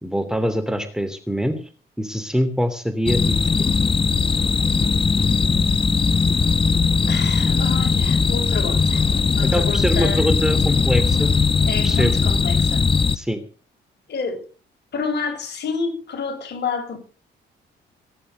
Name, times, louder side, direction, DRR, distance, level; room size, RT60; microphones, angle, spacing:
voice 1, 0.0-1.6 2.0-3.4 9.4-11.3 11.8-12.1 13.1-13.4, equal, 5° right, 2.8 m, -23 dB
sound 1, 3.1-13.2, left 4 dB, 25° left, 0.9 m, -19 dB
voice 2, 7.1-9.0 9.3-10.2 11.7-12.8 14.1-14.4 14.9-17.0, left 5 dB, 60° left, 6.6 m, -29 dB
19.0 x 11.0 x 6.7 m
cardioid pair, 90°, 20 cm